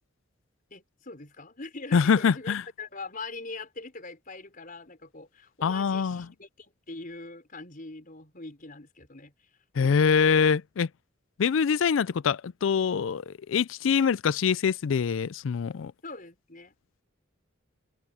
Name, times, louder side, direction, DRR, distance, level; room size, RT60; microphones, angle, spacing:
voice 1, 0.7-9.5 16.0-16.8, left 3 dB, 45° left, 5.3 m, -42 dB
voice 2, 1.9-2.6 5.6-6.2 9.8-10.9 11.4-15.9, left 6 dB, 75° left, 0.4 m, -24 dB
head